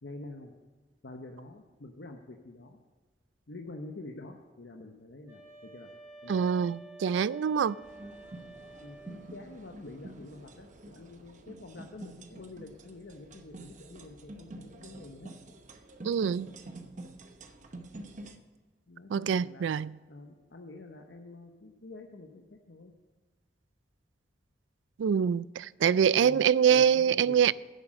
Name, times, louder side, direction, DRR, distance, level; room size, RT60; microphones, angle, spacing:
voice 1, 0.0-0.5 1.0-2.8 3.5-5.9 6.2-6.7 7.6-7.7 8.8-15.3 18.9-19.7 20.1-22.9 26.2-27.5, left 2 dB, 70° left, 0.9 m, -47 dB
sound 1, 5.3-9.4, right 2 dB, 15° right, 2.7 m, -50 dB
voice 2, 6.3-7.8 16.0-16.5 19.1-20.0 25.0-27.5, right 8 dB, 85° right, 0.3 m, -25 dB
sound 2, 7.8-18.4, right 2 dB, 40° right, 0.8 m, -48 dB
10.5 x 7.6 x 6.3 m
head